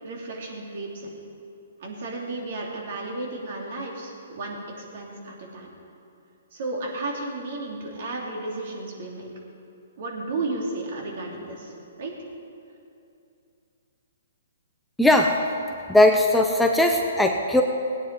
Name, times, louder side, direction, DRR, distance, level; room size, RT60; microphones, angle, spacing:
voice 1, 0.0-1.2 1.8-5.7 6.5-9.3 10.0-11.7 12.0-12.1, right 2 dB, 55° right, -1 dB, 3.0 m, -33 dB
voice 2, 15.0-15.4 15.9-17.6, left 1 dB, 5° left, 2 dB, 0.6 m, -18 dB
18.0 x 9.6 x 4.7 m, 2.6 s
hypercardioid pair, 145°, 0 cm